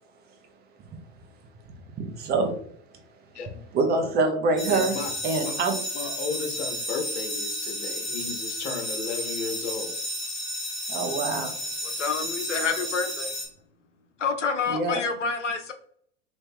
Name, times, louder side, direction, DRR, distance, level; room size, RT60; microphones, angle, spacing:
voice 1, 2.0-2.5 3.7-5.0 5.2-5.8 10.9-11.5 14.7-15.0, right 3 dB, 25° right, 5 dB, 0.7 m, -25 dB
sound 1, 4.6-13.5, left 1 dB, 20° left, 1.2 m, -32 dB
voice 2, 4.7-5.5 5.9-9.9, left 5 dB, 70° left, 3 dB, 1.0 m, -34 dB
voice 3, 12.0-13.3 14.2-15.7, left 5 dB, 90° left, 6 dB, 0.6 m, -28 dB
3.0 x 2.5 x 3.4 m, 0.64 s
figure-of-eight pair, 90°, 35 cm